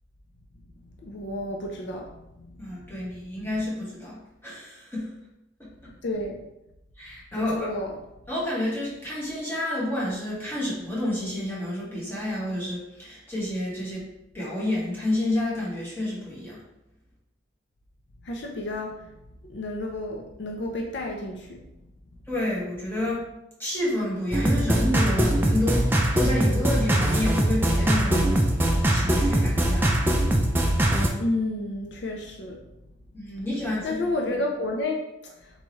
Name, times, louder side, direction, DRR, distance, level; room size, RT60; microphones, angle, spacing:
voice 1, 1.0-2.1 2.4-2.5 6.0-6.4 7.6-7.9 18.3-19.0 19.4-21.6 31.2-32.6 33.8-35.0, left 2 dB, 65° left, 1 dB, 0.5 m, -30 dB
voice 2, 2.6-5.1 5.6-5.7 7.0-7.7 8.3-14.1 14.3-16.6 22.3-23.2 23.6-28.5 28.9-30.0 33.1-34.0, left 1 dB, 10° left, -7 dB, 1.3 m, -29 dB
sound 1, 24.3-31.1, right 1 dB, 10° right, 0.4 m, -22 dB
4.0 x 3.5 x 3.1 m, 0.89 s
head